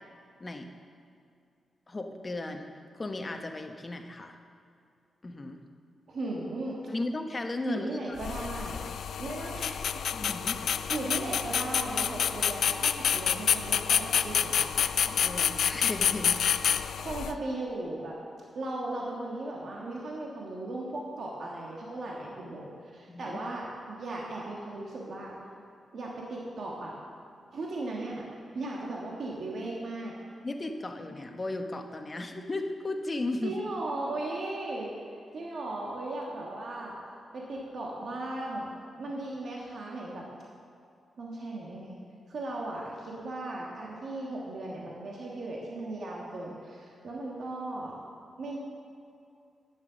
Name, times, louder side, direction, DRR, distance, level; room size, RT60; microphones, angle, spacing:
voice 1, 1.9-2.7 2.9-4.4 5.2-5.6 6.9-7.9 10.1-10.6 15.1-16.4 23.1-23.4 30.4-33.5, left 2 dB, 30° left, 4 dB, 0.9 m, -35 dB
voice 2, 6.1-6.8 7.6-8.8 9.2-10.0 10.6-14.6 17.0-18.2 18.5-22.7 22.9-25.3 25.9-26.9 27.5-28.3 28.5-30.1 33.4-34.9 35.3-36.9 37.3-40.3 41.2-42.0 42.3-48.0 48.4-48.6, right 2 dB, 65° right, -3 dB, 1.5 m, -37 dB
sound 1, 8.2-17.3, left 8 dB, 80° left, 0.3 m, -28 dB
9.8 x 7.5 x 6.3 m, 2.4 s
cardioid pair, 75°, 0 cm